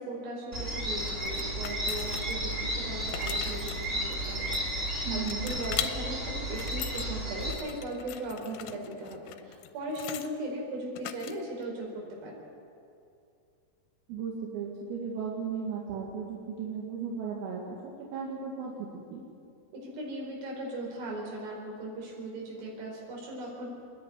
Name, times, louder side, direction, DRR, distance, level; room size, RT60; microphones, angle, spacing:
voice 1, 0.0-12.4 19.7-23.7, right 1 dB, 65° right, -2 dB, 6.9 m, -38 dB
sound 1, 0.5-7.5, right 1 dB, 15° right, 2.4 m, -33 dB
sound 2, 1.0-2.5 2.9-4.9 5.3-5.9 6.4-7.1 7.4-10.3 11.0-11.6, left 14 dB, 90° left, 3.5 m, -40 dB
voice 2, 5.0-5.5 14.1-19.2, right 6 dB, 85° right, -3 dB, 4.7 m, -36 dB
27.5 x 10.5 x 9.8 m, 2.6 s
omnidirectional pair, 5.9 m